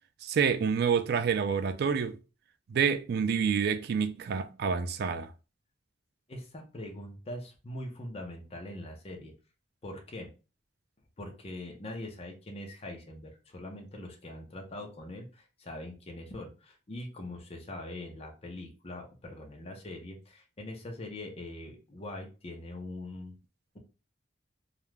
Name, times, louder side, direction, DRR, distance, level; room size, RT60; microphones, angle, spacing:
voice 1, 0.2-2.2 2.7-5.3, right 6 dB, 60° right, 0.3 m, -28 dB
voice 2, 6.3-9.3 9.8-10.3 11.2-23.3, left 1 dB, 35° left, 0.6 m, -42 dB
2.4 x 2.1 x 3.1 m
head